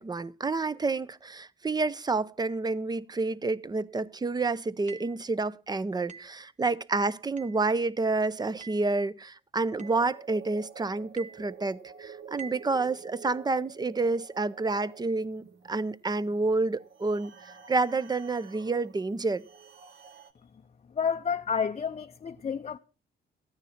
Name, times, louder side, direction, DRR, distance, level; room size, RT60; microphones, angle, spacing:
voice 1, 0.0-19.4, right 3 dB, 20° right, 0.6 m, -29 dB
sound 1, 4.9-5.2 6.1-6.4 7.4-7.7 8.6-8.9 9.8-10.1 11.2-11.5 12.4-12.7, right 6 dB, 35° right, 1.4 m, -46 dB
sound 2, 9.8-20.3, right 6 dB, 60° right, 1.5 m, -49 dB
voice 2, 20.9-22.8, left 6 dB, 35° left, 0.6 m, -30 dB
14.0 x 9.7 x 5.8 m
cardioid pair, 90°, 20 cm